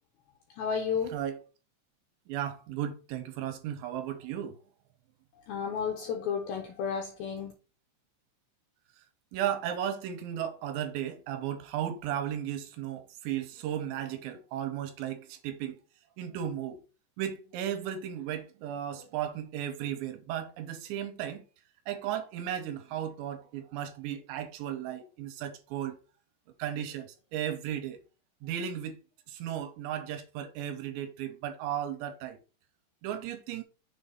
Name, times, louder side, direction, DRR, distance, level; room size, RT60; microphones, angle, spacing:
voice 1, 0.5-1.2 5.4-7.5, left 6 dB, 90° left, 2.2 m, -32 dB
voice 2, 2.3-4.6 9.3-15.8 16.2-16.8 17.2-21.5 21.9-26.0 26.6-28.0 28.4-29.0 29.3-32.4 33.0-33.6, right 10 dB, 80° right, 3.0 m, -35 dB
7.0 x 2.6 x 5.4 m
omnidirectional pair, 5.4 m